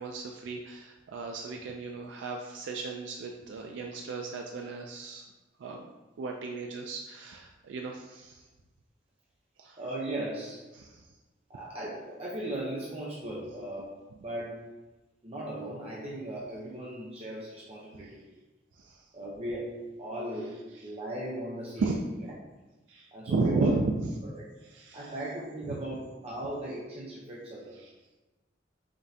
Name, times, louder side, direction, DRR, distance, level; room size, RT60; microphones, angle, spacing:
voice 1, 0.0-5.2 5.6-5.9 6.2-8.4 9.6-9.8 10.7-11.0 18.7-19.0 21.8-22.0 22.9-23.8 24.7-25.1 27.8-27.9, right 3 dB, 75° right, 1 dB, 0.3 m, -34 dB
voice 2, 9.8-10.6 11.5-13.9 14.2-14.6 15.2-18.2 19.1-21.9 23.1-23.7 24.2-24.4 24.9-27.7, right 1 dB, 35° right, -6 dB, 0.6 m, -37 dB
5.1 x 2.6 x 2.7 m, 1.1 s
head